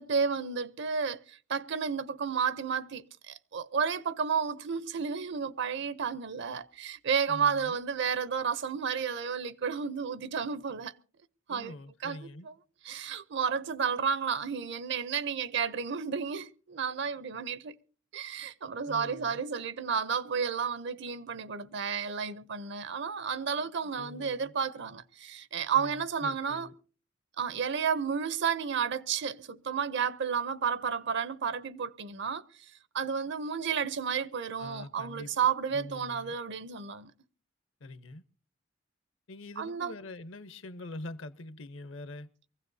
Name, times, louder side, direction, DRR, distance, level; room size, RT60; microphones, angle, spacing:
voice 1, 0.0-10.9 11.5-11.7 12.0-12.3 12.8-17.8 18.1-26.7 27.4-32.4 32.9-37.1 39.6-39.9, right 6 dB, 60° right, 0.6 m, -32 dB
voice 2, 7.3-7.8 11.5-12.5 18.8-19.4 24.0-24.5 25.7-26.7 34.6-35.3 35.7-36.3 37.8-38.2 39.3-42.3, left 2 dB, 70° left, 0.8 m, -44 dB
23.5 x 15.5 x 2.7 m
head